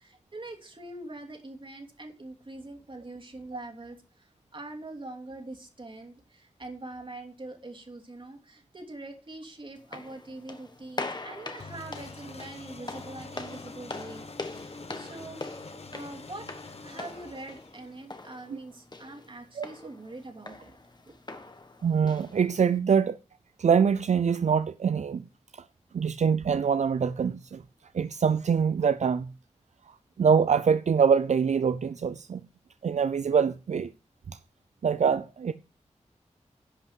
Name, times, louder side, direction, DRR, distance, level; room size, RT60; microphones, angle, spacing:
voice 1, 0.1-14.3 14.6-16.5 16.8-20.7 21.0-21.4, right 2 dB, 45° right, 2.9 m, -43 dB
sound 1, 9.8-22.8, left 3 dB, 35° left, 1.4 m, -43 dB
sound 2, 11.6-18.1, left 3 dB, 60° left, 1.3 m, -46 dB
voice 2, 21.8-23.2 23.6-25.3 25.5-25.6 25.9-27.6 27.9-29.3 29.9-32.4 32.8-33.9 34.3-34.4 34.8-35.5, right 6 dB, 70° right, 0.5 m, -24 dB
11.0 x 5.6 x 7.5 m
wide cardioid pair, 80°, 12 cm